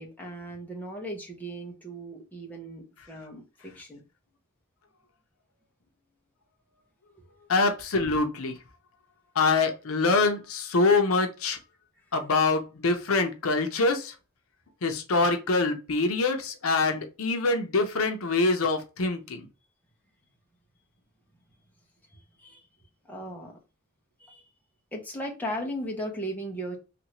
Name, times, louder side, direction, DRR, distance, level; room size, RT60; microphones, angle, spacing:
voice 1, 0.0-4.0 22.4-22.6 23.0-23.6 24.2-24.4 24.9-26.8, equal, 10° left, 0.7 m, -37 dB
voice 2, 7.5-8.5 9.4-11.6 12.1-14.1 14.8-19.5, left 3 dB, 80° left, 0.7 m, -25 dB
3.1 x 2.6 x 2.9 m
head